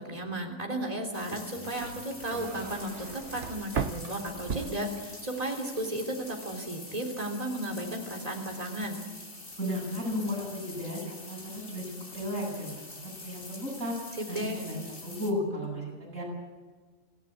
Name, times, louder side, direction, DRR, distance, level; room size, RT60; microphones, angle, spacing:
voice 1, 0.1-9.0 14.2-14.6, right 1 dB, 30° right, 1 dB, 3.5 m, -34 dB
sound 1, 1.1-15.3, left 2 dB, 45° left, 2.8 m, -45 dB
sound 2, 1.2-5.5 5.8-6.4, right 7 dB, 65° right, 1.1 m, -38 dB
voice 2, 9.6-13.9 14.3-16.2, left 1 dB, 80° right, -3 dB, 8.6 m, -34 dB
26.5 x 16.0 x 8.5 m, 1.4 s
omnidirectional pair, 1.4 m